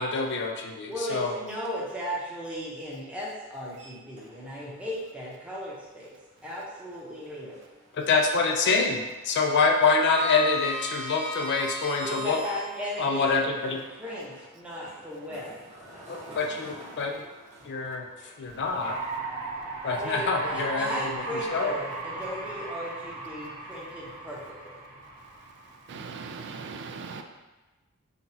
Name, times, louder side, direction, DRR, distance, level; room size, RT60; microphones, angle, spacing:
voice 1, 0.0-1.4 7.9-12.4 13.0-13.8 16.1-17.3 17.6-18.1 18.4-19.0 19.8-21.2 21.5-21.7, left 4 dB, 55° left, 0.4 m, -26 dB
voice 2, 0.9-6.1 6.4-7.6 12.0-15.6 19.9-24.8, equal, 5° right, 0.8 m, -36 dB
Sliding door, 3.7-4.7 5.0-5.2 6.9-7.9 8.2-8.6 8.8-12.9 13.6-18.8, left 2 dB, 35° right, 1.3 m, -39 dB
sound 1, 18.4-26.4, right 3 dB, 90° right, 0.8 m, -37 dB
voice 3, 25.2-27.2, right 5 dB, 55° right, 0.3 m, -40 dB
5.7 x 2.3 x 2.7 m
head